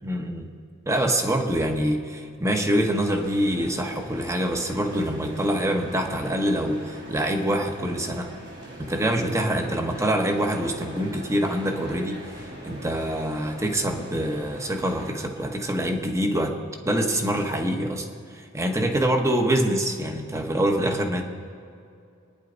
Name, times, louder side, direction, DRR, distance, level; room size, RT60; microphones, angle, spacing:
voice 1, 0.0-0.5 0.9-8.3 8.8-12.2 12.6-16.5 16.8-18.0 18.3-21.2, right 1 dB, 15° right, 3 dB, 1.3 m, -25 dB
sound 1, 3.1-15.1, right 1 dB, 60° right, 2.9 m, -41 dB
25.5 x 10.0 x 4.0 m, 2.4 s
head